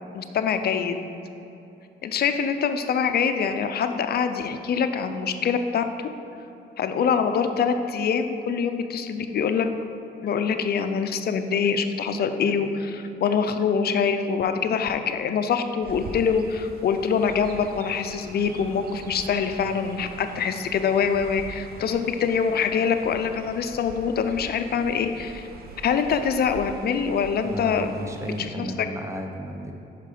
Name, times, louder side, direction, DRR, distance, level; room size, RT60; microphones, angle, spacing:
voice 1, 0.1-1.0 2.0-5.8 6.8-9.7 10.2-25.5 25.8-27.9 28.2-28.7, left 6 dB, 55° left, 8 dB, 0.5 m, -24 dB
Chirp tweet, 15.8-28.5, right 4 dB, 50° right, 0.6 m, -43 dB
voice 2, 27.4-29.7, equal, 15° right, 3 dB, 0.8 m, -34 dB
5.7 x 5.3 x 5.0 m, 3.0 s
cardioid pair, 90°, 20 cm